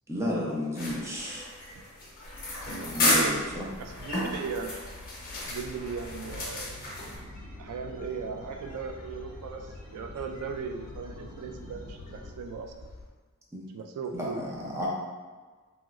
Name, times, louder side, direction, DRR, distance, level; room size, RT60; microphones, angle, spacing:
voice 1, 0.1-1.4 2.8-3.7 13.5-13.6 14.1-14.9, left 1 dB, 10° right, -4 dB, 0.5 m, -33 dB
sound 1, 0.8-7.2, left 2 dB, 40° left, 0.7 m, -32 dB
sound 2, 2.2-13.1, left 2 dB, 70° left, 0.5 m, -48 dB
voice 2, 3.0-3.4 3.8-4.8 5.4-6.7 7.6-12.9 13.7-14.4, right 5 dB, 90° right, 10 dB, 0.3 m, -37 dB
sound 3, 5.9-12.3, equal, 30° right, 1.0 m, -48 dB
2.9 x 2.9 x 2.4 m, 1.4 s
head